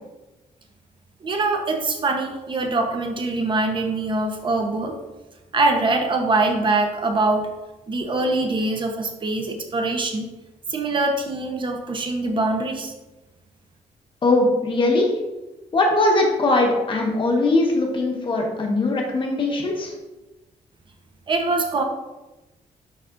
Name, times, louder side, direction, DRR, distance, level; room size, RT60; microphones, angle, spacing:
voice 1, 1.2-5.0 5.5-7.5 7.9-10.3 10.7-12.9 21.3-21.8, right 2 dB, 35° right, 3 dB, 0.9 m, -23 dB
voice 2, 14.2-15.1 15.7-19.9, left 2 dB, 35° left, 0 dB, 1.3 m, -20 dB
11.0 x 4.1 x 2.6 m, 1.1 s
cardioid pair, 140°, 14 cm